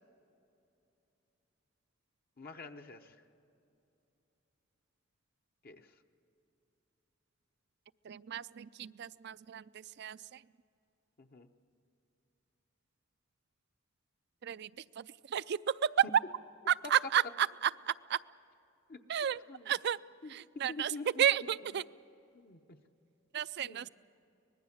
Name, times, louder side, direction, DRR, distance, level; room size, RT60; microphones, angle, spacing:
voice 1, 2.4-3.2 5.6-5.9 11.2-11.5 18.9-19.0 19.5-19.7 20.2-20.3 20.7-21.2 22.3-22.8 23.6-23.9, left 3 dB, 50° left, 5 dB, 0.9 m, -47 dB
voice 2, 8.0-10.4 14.4-16.1 16.7-18.2 19.1-20.0 20.3-21.8 23.3-23.9, right 9 dB, 55° right, 18 dB, 0.4 m, -32 dB
25.0 x 20.0 x 7.3 m, 2.8 s
head